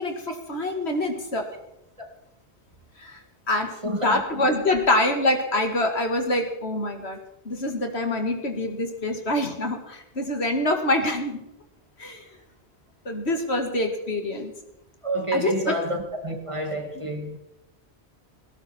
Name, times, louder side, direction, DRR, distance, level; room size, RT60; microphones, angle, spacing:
voice 1, 0.0-1.5 3.0-3.2 3.5-7.2 7.5-11.4 12.0-12.2 13.1-14.5 15.3-15.7, left 1 dB, 75° left, 2.4 m, -25 dB
voice 2, 3.8-4.2 15.0-17.4, right 1 dB, 30° right, 2.4 m, -28 dB
18.5 x 17.5 x 4.4 m
omnidirectional pair, 1.1 m